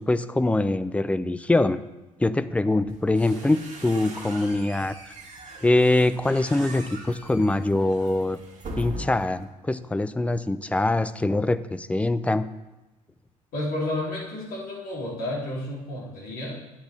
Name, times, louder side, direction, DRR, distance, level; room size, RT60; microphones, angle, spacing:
voice 1, 0.0-1.8 2.2-4.9 5.6-8.4 8.8-12.5, left 2 dB, 5° left, 13 dB, 0.5 m, -23 dB
sound 1, 2.9-9.4, right 1 dB, 40° right, 2.1 m, -41 dB
voice 2, 13.5-16.7, left 1 dB, 55° left, -4 dB, 3.1 m, -31 dB
9.9 x 8.4 x 3.4 m, 1.0 s
figure-of-eight pair, 50°, 18 cm